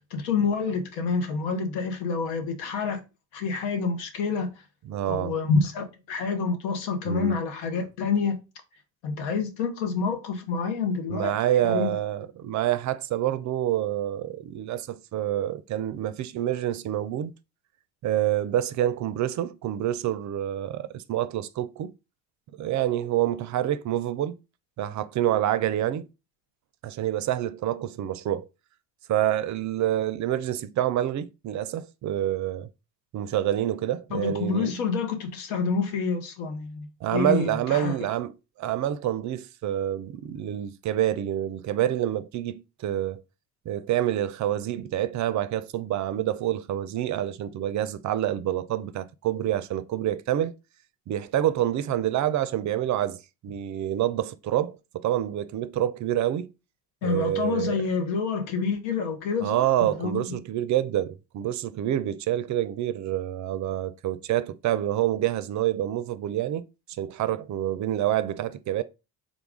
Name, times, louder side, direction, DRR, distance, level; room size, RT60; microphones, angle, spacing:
voice 1, 0.1-3.0 3.3-4.5 5.1-8.4 9.0-11.3 11.6-11.9 34.1-38.0 57.0-60.4, left 5 dB, 85° left, 0.9 m, -28 dB
voice 2, 4.9-5.3 7.1-7.4 11.1-17.3 18.0-21.9 22.6-24.3 24.8-26.1 26.8-28.5 29.1-32.7 33.1-34.7 37.0-43.2 43.7-50.5 51.1-56.5 57.0-57.8 59.4-66.6 67.0-68.8, right 12 dB, 50° right, 0.4 m, -27 dB
3.7 x 2.4 x 3.6 m
supercardioid pair, 75°, 39 cm